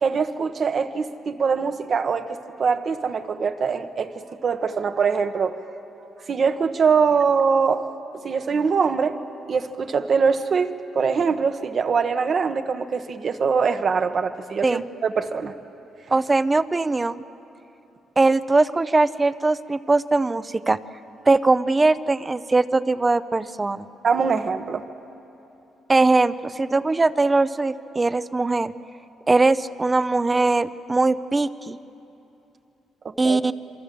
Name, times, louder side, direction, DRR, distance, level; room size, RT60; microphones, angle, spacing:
voice 1, 0.0-5.6 6.3-7.9 8.2-9.2 9.5-15.5 24.0-24.9 33.0-33.4, right 5 dB, 50° right, 8 dB, 1.2 m, -23 dB
voice 2, 16.1-17.2 18.2-20.8 21.3-23.9 25.9-28.7 29.3-31.8 33.2-33.5, right 3 dB, 20° right, 14 dB, 0.7 m, -20 dB
27.5 x 23.5 x 7.7 m, 2.9 s
cardioid pair, 90°, 0 cm